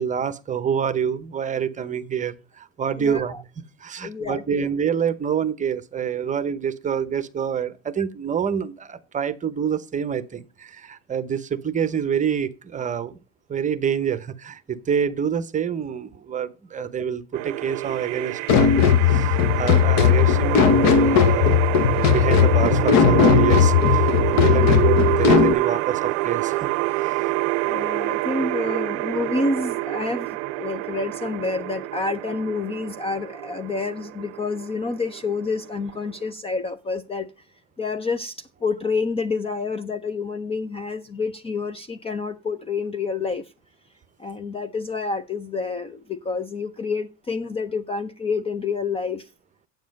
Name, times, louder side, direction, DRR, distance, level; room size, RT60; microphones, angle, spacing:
voice 1, 0.0-3.4 3.8-13.1 13.5-26.7, right 8 dB, 20° right, 0.9 m, -27 dB
voice 2, 3.0-3.4 4.0-4.7 24.5-24.9 27.6-37.3 37.8-43.5 44.2-49.3, left 4 dB, 15° left, 0.5 m, -28 dB
sound 1, 17.3-36.3, right 19 dB, 60° right, 0.7 m, -27 dB
sound 2, 18.5-25.5, left 8 dB, 45° left, 1.0 m, -17 dB
9.3 x 7.3 x 5.2 m
supercardioid pair, 130°, 39 cm